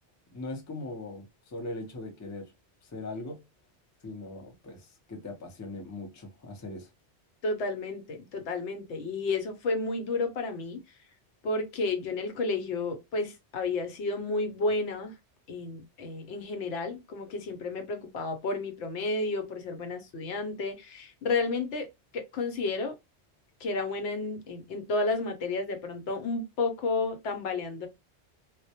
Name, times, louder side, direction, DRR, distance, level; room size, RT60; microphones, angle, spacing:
voice 1, 0.3-2.5 2.8-3.4 4.0-6.9, left 2 dB, 25° left, 0.4 m, -40 dB
voice 2, 7.4-10.8 11.4-15.1 15.5-21.9 22.1-23.0 23.6-27.9, left 3 dB, 85° left, 0.9 m, -31 dB
2.1 x 2.1 x 2.7 m
omnidirectional pair, 1.2 m